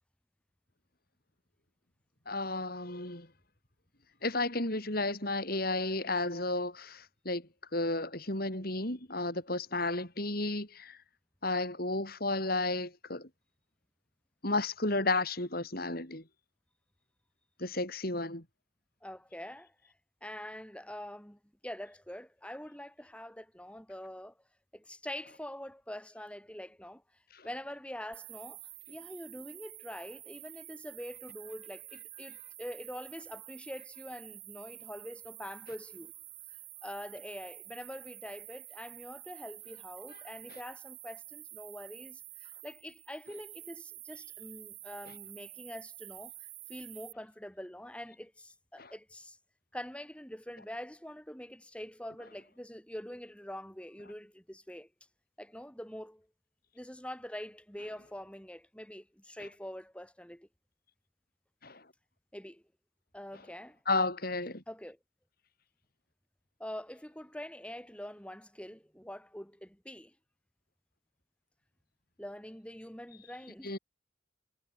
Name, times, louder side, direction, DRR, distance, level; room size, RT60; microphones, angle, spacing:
voice 1, 2.3-3.3 4.2-11.0 11.4-13.3 14.4-16.2 17.6-18.4 48.8-48.9 61.6-61.8 63.9-64.6 73.6-73.8, left 2 dB, 50° left, 6.1 m, -33 dB
voice 2, 19.0-19.9 20.2-24.4 24.7-28.6 28.9-36.1 36.5-49.4 49.7-54.9 55.4-56.3 56.7-60.5 62.3-62.6 63.1-63.8 64.7-65.0 66.6-70.2 72.2-73.8, equal, 5° left, 5.3 m, -45 dB
sound 1, 28.1-47.1, right 16 dB, 55° right, 6.2 m, -49 dB
head